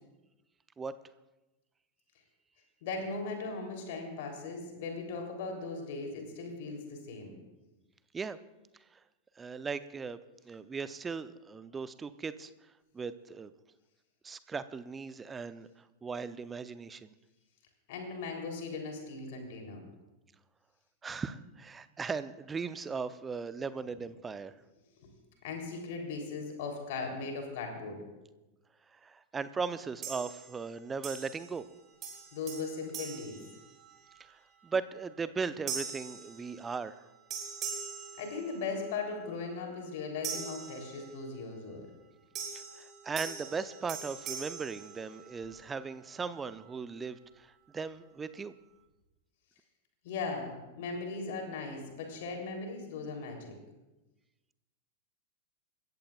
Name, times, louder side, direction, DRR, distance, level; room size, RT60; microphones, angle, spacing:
voice 1, 2.8-7.4 17.9-19.8 25.0-25.1 25.4-28.0 32.3-33.4 38.2-41.9 50.0-53.5, left 4 dB, 50° left, 2 dB, 3.4 m, -38 dB
voice 2, 9.4-10.2 10.5-12.5 12.9-13.5 14.2-15.7 16.0-17.1 21.0-24.5 29.0-31.7 34.3-37.0 42.5-48.5, right 5 dB, 15° right, 14 dB, 0.7 m, -38 dB
sound 1, 30.0-30.7 31.0-31.7 32.0-34.2 34.7-35.0 35.7-37.0 37.3-38.9 40.2-41.4 42.3-45.6, right 6 dB, 30° right, 3.6 m, -42 dB
28.5 x 14.5 x 2.4 m, 1.0 s
figure-of-eight pair, 90°, 0 cm